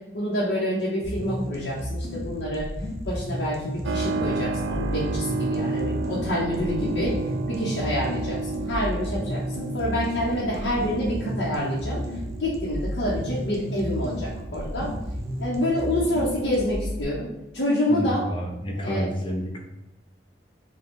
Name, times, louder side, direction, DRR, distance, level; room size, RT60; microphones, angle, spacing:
voice 1, 0.1-2.7 3.1-7.2 7.5-14.9 15.4-17.3 17.5-18.3 18.8-19.1, equal, 75° left, -7 dB, 0.8 m, -27 dB
sound 1, 1.0-17.0, equal, 15° right, 0.6 m, -32 dB
Keyboard (musical), 3.8-16.2, right 3 dB, 85° right, 0.3 m, -33 dB
voice 2, 17.9-19.6, equal, 30° left, 0 dB, 0.7 m, -29 dB
4.9 x 2.3 x 3.6 m, 0.95 s
head